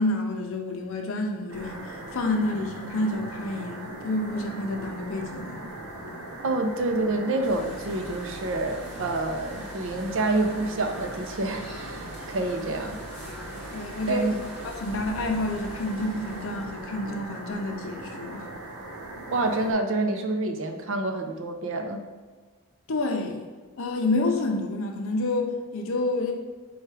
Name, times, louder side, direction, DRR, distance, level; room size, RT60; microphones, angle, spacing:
voice 1, 0.0-5.7 13.7-14.3 14.6-18.5 22.9-23.5 23.8-26.3, left 2 dB, 60° left, 3 dB, 0.6 m, -29 dB
sound 1, 1.5-19.7, right 1 dB, 85° right, 0.9 m, -40 dB
voice 2, 6.4-13.0 14.1-14.4 19.3-22.0, right 2 dB, 60° right, 5 dB, 0.5 m, -27 dB
sound 2, 7.4-17.0, equal, 10° right, 0.9 m, -44 dB
4.4 x 2.3 x 4.7 m, 1.4 s
head